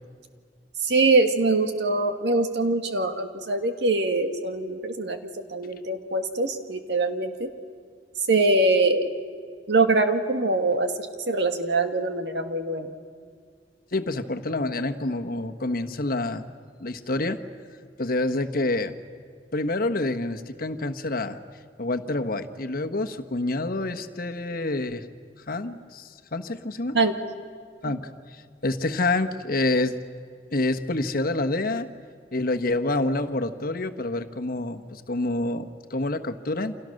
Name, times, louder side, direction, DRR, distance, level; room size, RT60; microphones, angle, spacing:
voice 1, 0.8-5.2 5.5-7.5 8.3-9.1 9.7-10.9 11.3-12.9 26.9-27.1 27.8-27.9, right 2 dB, 75° right, 6 dB, 1.9 m, -23 dB
voice 2, 13.9-16.5 16.8-17.4 18.0-18.9 19.5-21.4 21.8-25.0 25.5-27.0 27.8-29.9 30.5-31.9 32.3-36.7, left 2 dB, 55° left, 8 dB, 1.3 m, -27 dB
29.5 x 26.5 x 6.5 m, 2.1 s
head